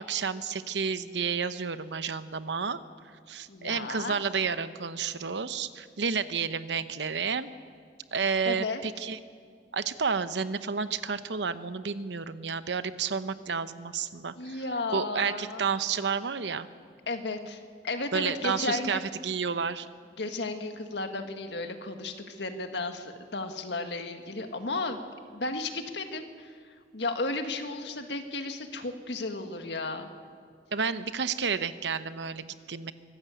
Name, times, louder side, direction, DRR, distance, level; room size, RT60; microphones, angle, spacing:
voice 1, 0.0-2.8 3.3-7.5 8.1-9.2 9.7-14.6 14.9-16.7 18.1-19.9 30.7-32.9, right 6 dB, 85° right, 12 dB, 0.8 m, -31 dB
voice 2, 3.5-4.2 8.4-8.8 14.4-15.6 17.1-19.0 20.2-25.0 25.3-26.5 26.9-30.1, left 3 dB, 80° left, 6 dB, 1.7 m, -34 dB
24.5 x 13.5 x 8.2 m, 2.1 s
head